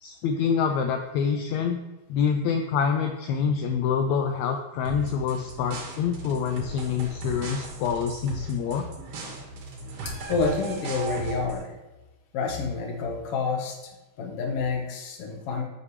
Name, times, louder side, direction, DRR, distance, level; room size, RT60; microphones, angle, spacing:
voice 1, 0.0-1.8 2.1-8.9, left 6 dB, 80° left, 5 dB, 1.7 m, -26 dB
sound 1, 4.9-11.6, right 3 dB, 75° right, 2.9 m, -37 dB
voice 2, 10.0-11.7 12.3-13.9 14.2-15.6, left 4 dB, 60° left, 3 dB, 1.7 m, -28 dB
9.4 x 5.8 x 3.2 m, 1.1 s
omnidirectional pair, 3.7 m